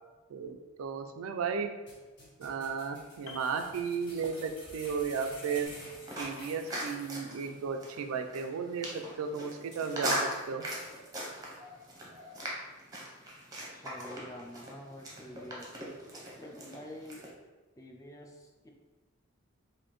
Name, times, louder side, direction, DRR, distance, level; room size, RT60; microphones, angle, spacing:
voice 1, 0.3-1.7 2.4-5.7 6.2-10.6, right 5 dB, 80° right, 6 dB, 0.3 m, -34 dB
sound 1, 1.9-7.6 7.9-8.0 8.4-8.5 8.9-9.0 9.5-10.3 10.8-10.9, left 1 dB, 55° left, 1.4 m, -51 dB
Piano, 3.3-4.7 5.0-5.2, left 4 dB, 80° left, 0.5 m, -51 dB
sound 2, 5.6-17.3, right 1 dB, 15° right, 0.7 m, -40 dB
voice 2, 13.7-15.8 16.4-17.3 17.8-18.7, left 1 dB, 15° left, 1 dB, 0.4 m, -47 dB
4.1 x 2.6 x 3.0 m, 1.3 s
head